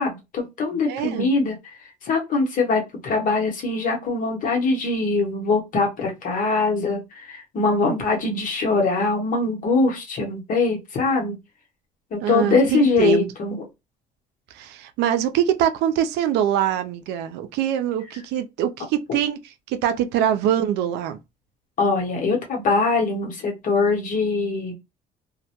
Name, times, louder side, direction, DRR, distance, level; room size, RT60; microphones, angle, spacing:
voice 1, 0.0-1.6 2.0-11.4 12.1-13.6 21.8-24.7, left 3 dB, 50° left, 0.9 m, -22 dB
voice 2, 0.9-1.3 12.2-13.3 14.5-19.4 19.7-21.2, right 10 dB, 85° right, 0.4 m, -23 dB
2.1 x 2.1 x 2.8 m
cardioid pair, 110°, 17 cm